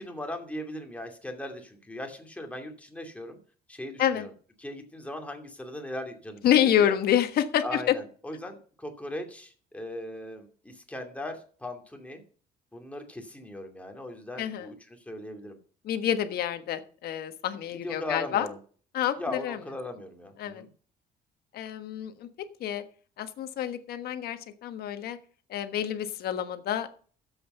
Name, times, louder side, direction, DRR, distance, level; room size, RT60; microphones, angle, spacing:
voice 1, 0.0-3.4 3.7-4.3 4.6-6.4 6.8-7.0 7.6-12.2 12.7-14.7 15.1-15.6 17.8-18.6 19.2-20.7, left 1 dB, 10° left, 3 dB, 2.6 m, -38 dB
voice 2, 6.4-7.9 14.4-14.7 15.8-18.5 18.9-19.6 20.4-20.6 21.5-22.3 22.6-22.8 23.2-25.2 25.5-26.9, left 10 dB, 65° left, 9 dB, 1.4 m, -27 dB
12.5 x 8.0 x 5.6 m, 0.44 s
cardioid pair, 110°, 17 cm